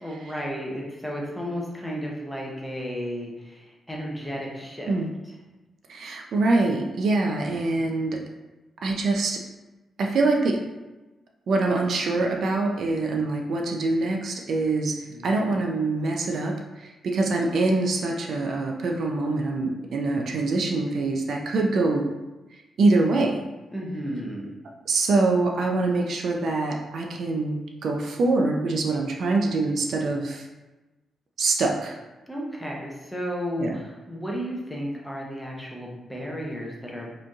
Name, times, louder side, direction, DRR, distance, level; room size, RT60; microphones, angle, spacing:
voice 1, 0.0-4.9 5.2-5.3 7.7-7.8 14.7-15.5 23.7-24.5 32.3-37.2, equal, 5° left, -3 dB, 0.7 m, -33 dB
voice 2, 5.9-8.2 8.8-9.4 10.0-10.6 11.5-14.9 15.2-16.6 17.0-22.1 22.8-23.4 24.9-30.4 31.4-32.0 33.6-33.7, right 3 dB, 55° right, 1 dB, 0.4 m, -24 dB
4.9 x 3.0 x 2.3 m, 1.1 s
wide cardioid pair, 150°, 0 cm